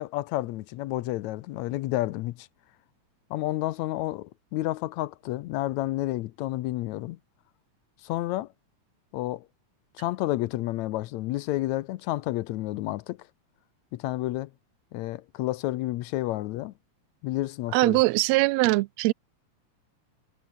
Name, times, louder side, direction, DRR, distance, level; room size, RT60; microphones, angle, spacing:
voice 1, 0.0-2.5 3.3-7.2 8.0-8.5 9.1-9.5 10.0-13.3 13.9-14.5 14.9-16.7 17.2-18.0, left 16 dB, 75° left, 1.9 m, -30 dB
voice 2, 17.7-19.1, right 21 dB, 80° right, 1.6 m, -22 dB
omnidirectional pair, 3.4 m